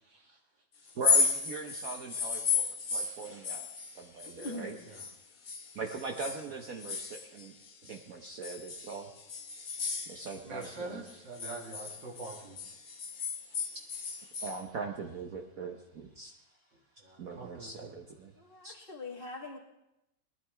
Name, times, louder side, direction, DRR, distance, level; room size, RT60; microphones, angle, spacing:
voice 1, 0.1-0.4 4.8-5.0 10.4-12.6 17.0-17.9, right 3 dB, 85° right, -1 dB, 2.9 m, -44 dB
sound 1, 0.9-5.2 5.5-8.0 8.4-10.8 11.1-14.6, left 5 dB, 50° left, 1.6 m, -33 dB
voice 2, 0.9-4.8 5.7-7.5 7.8-9.1 10.1-11.0 13.9-16.3 17.2-18.3 18.6-18.7, right 4 dB, 55° right, 2 dB, 1.3 m, -41 dB
voice 3, 4.4-4.8 18.4-19.6, left 2 dB, 30° left, -3 dB, 2.2 m, -42 dB
19.5 x 12.0 x 3.5 m, 0.88 s
omnidirectional pair, 1.9 m